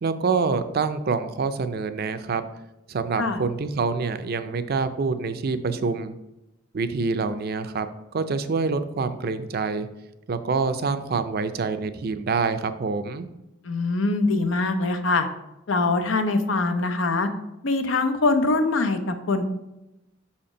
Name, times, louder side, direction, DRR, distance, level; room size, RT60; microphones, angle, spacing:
voice 1, 0.0-2.4 2.9-6.1 6.7-7.9 8.1-9.9 10.3-13.3, right 4 dB, 55° right, 10 dB, 0.5 m, -26 dB
voice 2, 13.6-15.3 15.7-17.3 17.6-19.4, left 3 dB, 85° left, 8 dB, 0.7 m, -23 dB
5.8 x 4.3 x 5.0 m, 0.92 s
head